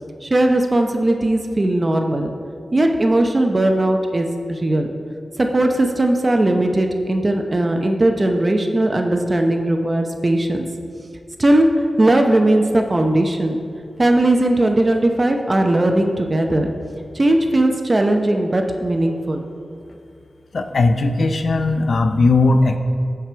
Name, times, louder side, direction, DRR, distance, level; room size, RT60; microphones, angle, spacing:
voice 1, 0.2-2.3 2.7-4.9 5.4-10.7 11.4-13.6 14.0-16.7 17.1-19.4, right 1 dB, 35° right, 4 dB, 0.7 m, -18 dB
voice 2, 20.5-22.8, left 3 dB, 65° left, 7 dB, 0.6 m, -17 dB
14.0 x 4.8 x 4.6 m, 2.4 s
wide cardioid pair, 90°, 0 cm